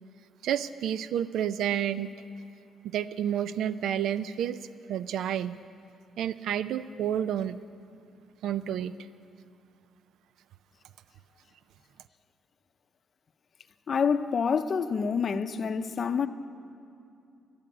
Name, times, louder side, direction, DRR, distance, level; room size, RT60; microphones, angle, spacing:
voice 1, 0.4-2.1 2.8-5.6 6.2-7.6 8.4-8.9, right 10 dB, 80° right, 0.3 m, -30 dB
voice 2, 13.9-16.3, left 6 dB, 45° left, 0.6 m, -27 dB
12.0 x 10.5 x 9.5 m
cardioid pair, 90°, 0 cm